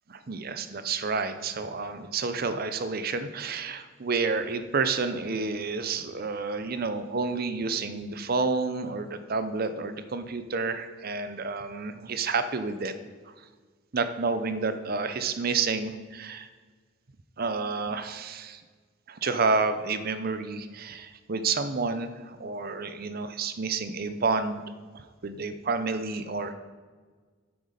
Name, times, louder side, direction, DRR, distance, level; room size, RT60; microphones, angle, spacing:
voice 1, 0.1-12.9 13.9-16.5 17.4-18.6 19.1-24.6 24.9-26.5, right 4 dB, 50° right, 11 dB, 0.6 m, -30 dB
9.5 x 8.0 x 5.0 m, 1.5 s
head